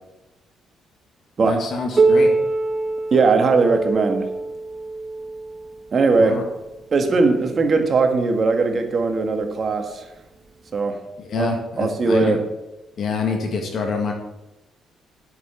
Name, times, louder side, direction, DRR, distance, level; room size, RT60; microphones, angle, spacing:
voice 1, 1.4-2.3 6.2-6.4 11.2-12.4 13.0-14.1, left 4 dB, 60° left, 3 dB, 1.8 m, -26 dB
Piano, 2.0-7.3 8.1-8.2 8.7-8.8 9.6-9.7 10.7-10.8, right 3 dB, 30° right, 1.3 m, -23 dB
voice 2, 3.1-4.3 5.9-6.4 6.9-10.1 10.7-11.0 11.4-12.4, right 4 dB, 45° right, 5 dB, 1.7 m, -19 dB
8.3 x 6.8 x 8.2 m, 0.99 s
cardioid pair, 90°, 0 cm